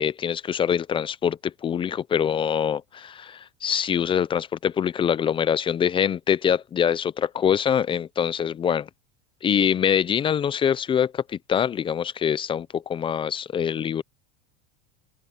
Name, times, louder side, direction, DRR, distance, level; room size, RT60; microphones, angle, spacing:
voice 1, 0.0-8.9 9.4-14.0, left 8 dB, 20° left, 0.3 m, -24 dB
open air
supercardioid pair, 135°, 30 cm